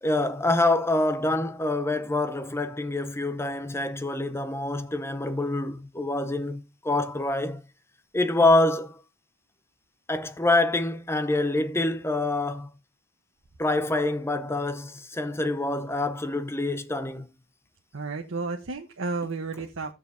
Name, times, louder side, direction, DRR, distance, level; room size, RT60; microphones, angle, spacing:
voice 1, 0.0-7.6 8.1-9.0 10.1-12.7 13.6-17.3, left 2 dB, 15° left, 0.6 m, -26 dB
voice 2, 17.9-19.9, right 3 dB, 85° right, 1.0 m, -32 dB
15.0 x 6.7 x 2.6 m
head